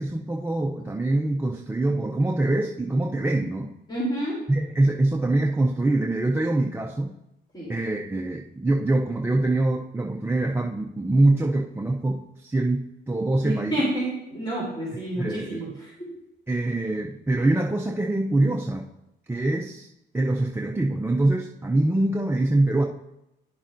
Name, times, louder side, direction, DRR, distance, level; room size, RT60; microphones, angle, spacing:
voice 1, 0.0-3.7 4.5-7.2 7.7-13.8 15.1-15.8 16.5-18.9 19.3-19.9 20.1-22.8, right 2 dB, 10° right, 0 dB, 0.5 m, -24 dB
voice 2, 3.9-4.4 7.5-7.7 13.4-15.7, right 1 dB, 20° left, -7 dB, 3.2 m, -28 dB
10.0 x 7.0 x 2.6 m, 0.88 s
cardioid pair, 90°, 20 cm